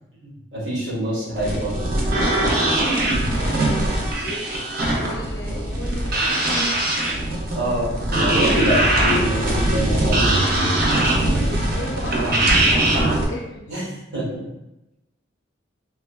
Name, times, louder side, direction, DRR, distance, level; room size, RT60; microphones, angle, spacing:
voice 1, 0.2-2.0 7.5-7.9 8.2-10.2 13.7-14.3, right 1 dB, 65° right, -8 dB, 1.5 m, -26 dB
sound 1, 1.4-13.2, right 1 dB, 50° right, 0.5 m, -21 dB
voice 2, 2.0-4.5 4.9-6.9 8.6-8.9 11.1-13.7, left 1 dB, 70° left, 0 dB, 0.6 m, -35 dB
3.5 x 2.1 x 2.2 m, 0.92 s
head